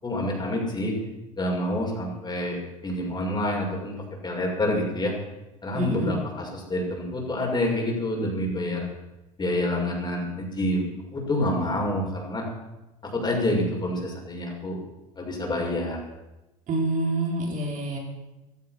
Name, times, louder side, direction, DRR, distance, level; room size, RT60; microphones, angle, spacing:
voice 1, 0.0-0.9 1.4-2.6 2.8-3.9 4.2-5.1 5.6-8.8 9.4-10.9 11.1-12.4 13.0-14.8 15.1-16.0, left 1 dB, 25° left, 0 dB, 6.6 m, -27 dB
voice 2, 5.7-6.2 16.7-18.0, right 2 dB, 45° right, 0 dB, 4.9 m, -27 dB
16.0 x 13.5 x 6.2 m, 1.0 s
hypercardioid pair, 70°, 18 cm